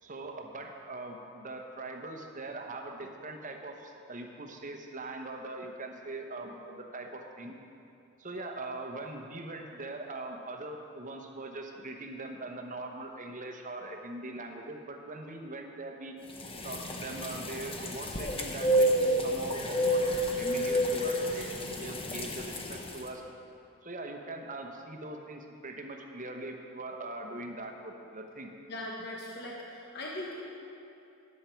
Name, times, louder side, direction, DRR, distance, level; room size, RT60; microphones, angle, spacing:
voice 1, 0.0-7.6 8.2-16.1 16.6-20.0 20.4-23.2 23.8-28.5, right 2 dB, 35° right, 3 dB, 1.0 m, -41 dB
sound 1, 16.4-23.0, equal, 25° left, 0.9 m, -30 dB
voice 2, 28.7-30.4, left 1 dB, 50° left, -2 dB, 1.1 m, -39 dB
17.5 x 7.5 x 4.5 m, 2.8 s
head